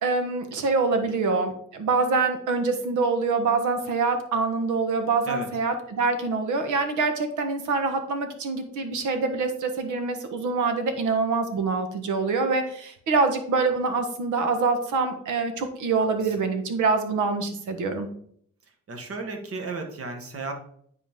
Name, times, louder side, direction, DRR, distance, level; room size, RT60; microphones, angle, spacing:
voice 1, 0.0-18.1, right 4 dB, 75° right, 7 dB, 1.4 m, -25 dB
voice 2, 18.9-20.5, right 3 dB, 50° right, 4 dB, 1.6 m, -34 dB
9.9 x 4.2 x 3.7 m, 0.63 s
cardioid pair, 90°, 30 cm